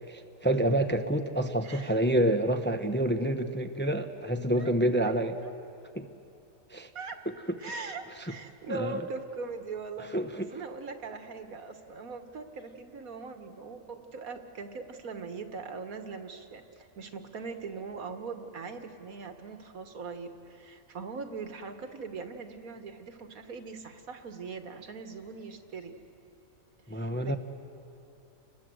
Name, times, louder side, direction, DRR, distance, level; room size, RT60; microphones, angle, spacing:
voice 1, 0.1-5.3 6.0-6.1 6.7-6.9 8.7-9.0 10.1-10.5 26.9-27.4, right 1 dB, 10° left, 6 dB, 0.8 m, -28 dB
voice 2, 1.6-2.0 4.6-4.7 5.0-5.5 6.9-7.2 7.6-26.0 26.9-27.4, right 4 dB, 85° right, 7 dB, 1.9 m, -41 dB
29.5 x 20.5 x 7.8 m, 2.8 s
omnidirectional pair, 1.5 m